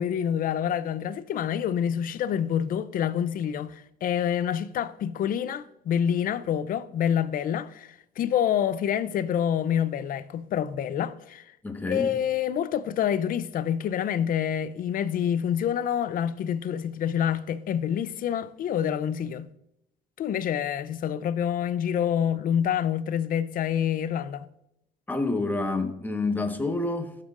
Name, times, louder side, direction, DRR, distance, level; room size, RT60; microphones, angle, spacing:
voice 1, 0.0-11.4 11.9-19.5 20.2-24.5, left 9 dB, 55° left, 0.6 m, -27 dB
voice 2, 11.6-12.1 25.1-27.2, left 2 dB, 10° left, 1.3 m, -28 dB
14.5 x 7.5 x 2.5 m
cardioid pair, 110°, 17 cm